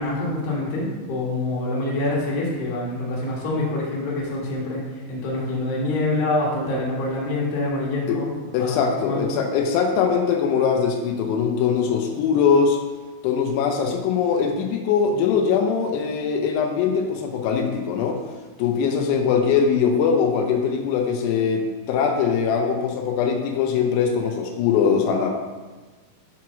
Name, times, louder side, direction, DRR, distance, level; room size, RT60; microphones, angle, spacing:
voice 1, 0.0-8.3 8.6-9.3, left 2 dB, 65° left, -5 dB, 3.0 m, -26 dB
voice 2, 8.5-12.8 13.2-18.2 18.6-25.3, left 6 dB, 90° left, 2 dB, 2.8 m, -21 dB
7.1 x 3.1 x 5.9 m, 1.3 s
omnidirectional pair, 4.7 m